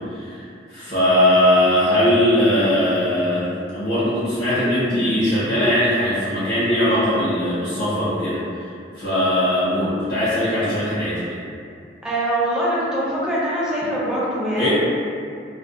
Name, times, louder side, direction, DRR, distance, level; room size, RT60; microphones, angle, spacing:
voice 1, 0.1-8.4 8.9-11.4 14.6-14.7, left 1 dB, 60° left, -13 dB, 0.7 m, -20 dB
voice 2, 12.0-14.7, right 1 dB, 5° right, -8 dB, 0.5 m, -23 dB
2.5 x 2.1 x 2.4 m, 2.4 s
head